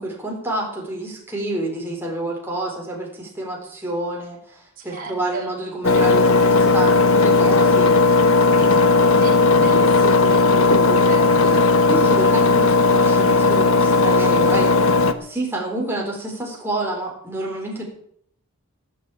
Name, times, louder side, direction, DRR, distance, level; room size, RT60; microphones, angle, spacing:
voice 1, 0.0-8.0 8.5-9.3 11.9-14.7 15.2-17.8, right 1 dB, 10° right, -2 dB, 4.1 m, -28 dB
voice 2, 4.8-5.6 9.1-11.6, right 2 dB, 40° right, -1 dB, 4.5 m, -32 dB
Engine, 5.8-15.1, left 3 dB, 70° left, 1.2 m, -16 dB
17.0 x 7.6 x 8.5 m, 0.67 s
head